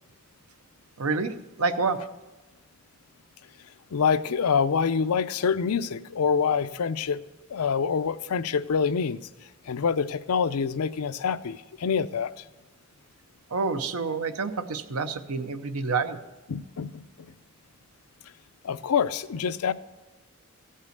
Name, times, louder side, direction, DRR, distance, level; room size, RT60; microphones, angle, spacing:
voice 1, 1.0-2.1 13.5-16.2, right 4 dB, 85° right, 10 dB, 0.8 m, -28 dB
voice 2, 3.9-7.2 7.5-9.3 9.7-12.4 16.5-17.3 18.6-19.7, left 6 dB, 90° left, 13 dB, 0.5 m, -26 dB
15.5 x 5.5 x 6.5 m, 1.2 s
head